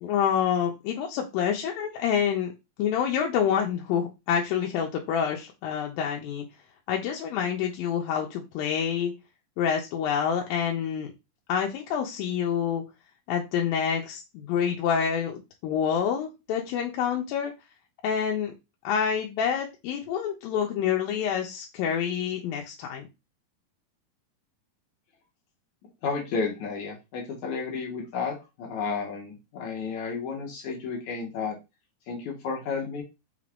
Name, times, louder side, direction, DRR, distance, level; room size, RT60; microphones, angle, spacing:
voice 1, 0.0-2.5 2.8-6.5 6.9-9.1 9.6-11.1 11.5-12.8 13.3-17.5 18.0-18.5 18.8-23.1, left 8 dB, 85° left, 1 dB, 2.3 m, -27 dB
voice 2, 26.0-31.6 32.1-33.0, left 5 dB, 65° left, 0 dB, 2.1 m, -32 dB
5.7 x 2.5 x 3.3 m, 0.25 s
omnidirectional pair, 4.2 m